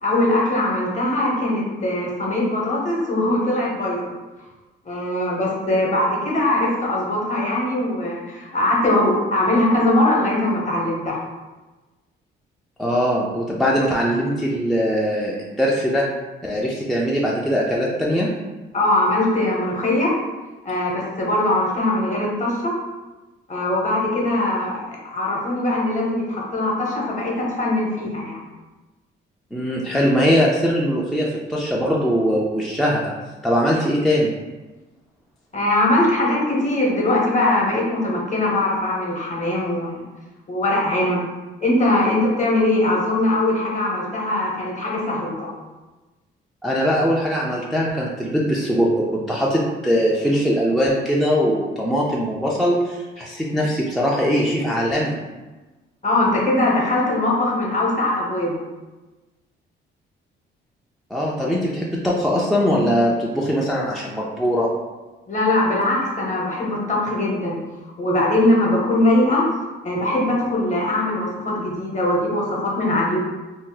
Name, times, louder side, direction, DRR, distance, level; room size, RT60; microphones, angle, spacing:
voice 1, 0.0-4.1 4.9-11.2 18.7-20.2 20.6-22.8 23.5-28.4 35.5-40.0 40.5-41.2 41.6-45.6 56.0-58.6 65.3-67.6 68.0-69.5 69.8-73.2, left 1 dB, 40° left, -2 dB, 0.9 m, -21 dB
voice 2, 12.8-16.1 16.4-18.3 29.5-33.1 33.4-34.3 46.6-55.2 61.1-64.7, equal, ahead, -4 dB, 0.4 m, -21 dB
2.7 x 2.1 x 3.8 m, 1.2 s
cardioid pair, 90°, 20 cm